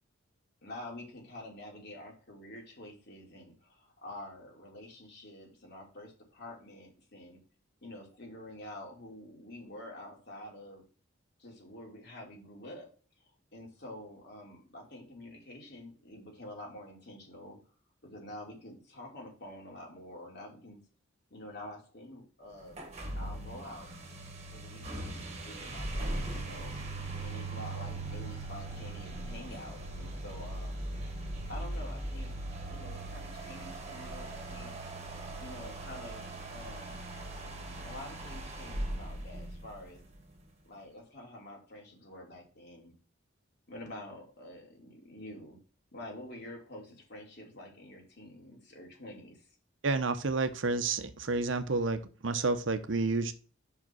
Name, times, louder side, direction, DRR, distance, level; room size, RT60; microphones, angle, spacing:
voice 1, 0.6-7.4 7.8-10.8 11.4-12.9 13.5-17.6 18.0-20.8 21.3-22.8 23.2-23.9 24.5-26.8 27.1-30.8 31.5-32.4 32.7-34.7 35.4-37.1 37.8-40.0 40.6-42.9 43.7-45.6 45.9-49.5, left 1 dB, 55° left, 0 dB, 3.0 m, -47 dB
sound 1, 22.7-40.2, right 2 dB, 35° right, 1.6 m, -39 dB
voice 2, 49.8-53.3, right 3 dB, 65° right, 11 dB, 0.8 m, -30 dB
5.9 x 4.9 x 6.0 m, 0.39 s
head